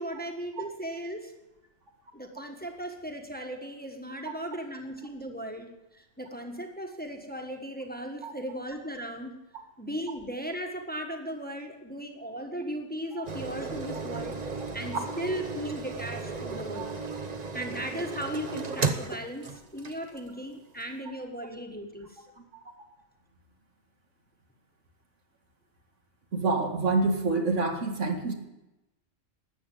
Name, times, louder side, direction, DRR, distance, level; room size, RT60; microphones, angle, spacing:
voice 1, 0.0-1.3 2.1-9.4 9.8-14.3 14.7-16.9 17.5-22.2, equal, 10° left, 3 dB, 1.4 m, -37 dB
sound 1, 13.3-20.3 20.8-20.9, right 4 dB, 35° right, 1.0 m, -35 dB
voice 2, 26.3-28.3, right 3 dB, 85° right, 3 dB, 2.2 m, -27 dB
13.0 x 8.5 x 9.1 m, 0.98 s
omnidirectional pair, 1.2 m